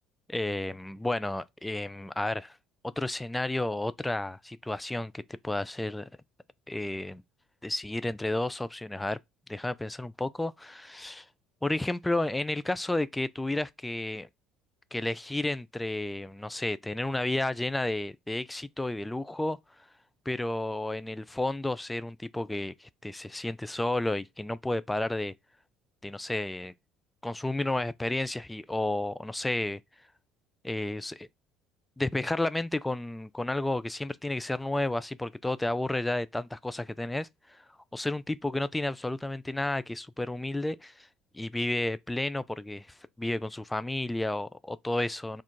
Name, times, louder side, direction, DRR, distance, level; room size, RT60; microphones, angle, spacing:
voice 1, 0.3-2.6 3.0-6.1 6.7-7.2 7.6-9.2 9.5-11.3 11.6-14.3 14.9-19.6 20.3-25.3 26.0-26.7 27.2-29.8 30.6-31.3 32.0-37.6 37.9-41.1 41.3-45.4, left 1 dB, 10° left, 0.3 m, -32 dB
3.4 x 2.4 x 4.3 m
figure-of-eight pair, 55°, 0 cm